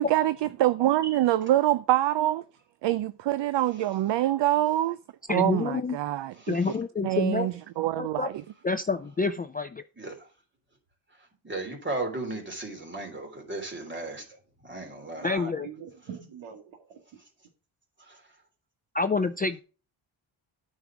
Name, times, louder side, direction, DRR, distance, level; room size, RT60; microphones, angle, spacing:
voice 1, 0.0-2.4 2.8-5.0 5.3-6.6 7.0-8.3, right 14 dB, 65° right, 0.6 m, -25 dB
voice 2, 5.3-6.0 6.5-7.5 8.0-8.3 8.6-9.8 15.2-15.7 18.9-19.6, left 4 dB, 20° left, 0.4 m, -28 dB
voice 3, 6.4-6.8 10.0-10.3 11.4-14.2 14.6-15.3 18.0-18.2, right 2 dB, 25° right, 3.3 m, -36 dB
voice 4, 15.0-17.0, right 5 dB, 85° right, 2.2 m, -42 dB
9.4 x 5.4 x 6.0 m
cardioid pair, 115°, 48 cm